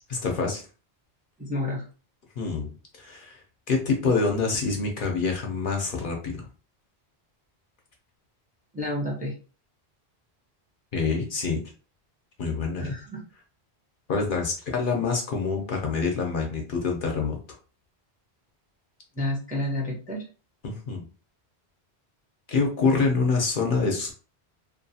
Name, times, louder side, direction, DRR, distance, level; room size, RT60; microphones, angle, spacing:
voice 1, 0.1-0.6 2.4-2.7 3.0-6.4 10.9-11.6 12.4-13.0 14.1-17.4 20.6-21.0 22.5-24.1, left 4 dB, 60° left, 1 dB, 0.8 m, -26 dB
voice 2, 1.4-1.8 8.7-9.3 12.8-13.2 19.1-20.2, left 1 dB, 10° right, -2 dB, 0.5 m, -30 dB
2.5 x 2.3 x 2.6 m, 0.36 s
omnidirectional pair, 1.1 m